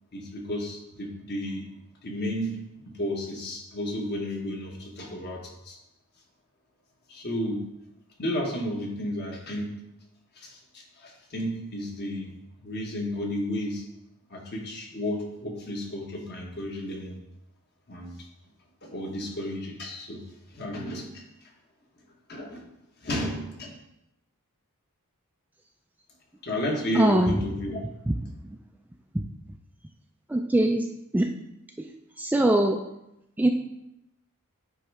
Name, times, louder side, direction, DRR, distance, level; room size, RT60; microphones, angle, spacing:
voice 1, 0.1-1.7 2.0-5.8 7.1-7.6 8.2-9.7 10.3-12.3 12.6-13.8 14.3-17.2 17.9-18.2 18.8-20.2 20.5-21.2 22.3-22.7 23.0-23.8 26.4-27.8, left 1 dB, 50° left, 0 dB, 1.2 m, -32 dB
voice 2, 27.0-27.4 29.1-29.2 30.3-30.8 31.1-31.3 32.2-32.8 33.4-33.5, right 1 dB, 5° right, 3 dB, 0.3 m, -21 dB
8.7 x 3.2 x 4.7 m, 0.85 s
head